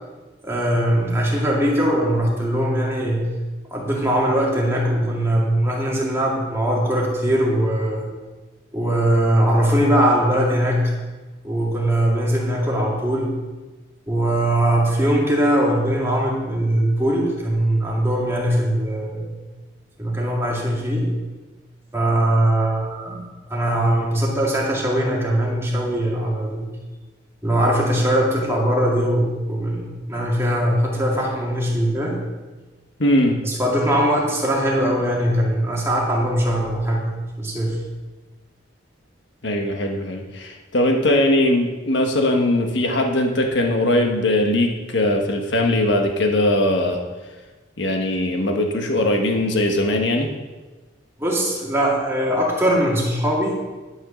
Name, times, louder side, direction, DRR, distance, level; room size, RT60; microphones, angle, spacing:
voice 1, 0.4-3.2 3.7-8.1 8.7-10.9 11.4-13.3 14.1-19.4 20.0-21.1 21.9-23.2 23.5-26.7 27.4-32.2 33.4-37.8 51.2-53.6, right 1 dB, 15° right, -4 dB, 2.2 m, -21 dB
voice 2, 33.0-33.4 39.4-47.0 47.8-50.3, left 1 dB, 70° left, 3 dB, 1.4 m, -20 dB
11.0 x 6.4 x 6.2 m, 1.2 s
head